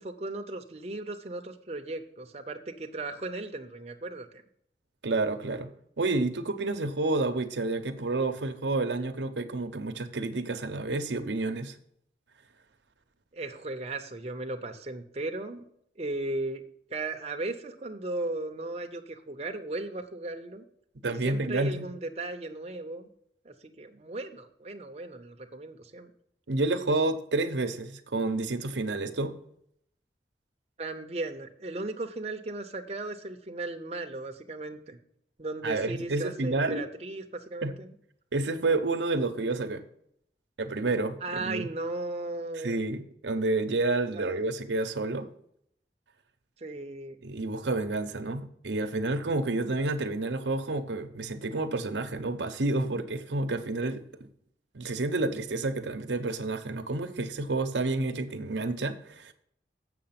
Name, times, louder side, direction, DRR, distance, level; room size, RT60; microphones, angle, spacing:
voice 1, 0.0-4.4 13.3-15.6 16.0-16.6 16.9-20.6 21.1-23.1 23.4-26.1 30.8-35.0 35.4-37.9 41.2-42.8 44.1-44.4 46.6-47.2, right 2 dB, 35° right, 0.7 m, -36 dB
voice 2, 5.0-5.7 6.0-11.8 21.0-21.9 26.5-29.3 35.6-36.8 37.6-37.7 38.3-39.8 40.6-41.7 42.6-45.3 47.2-54.3 54.7-59.3, right 2 dB, 90° right, 0.8 m, -29 dB
7.6 x 6.4 x 5.8 m
head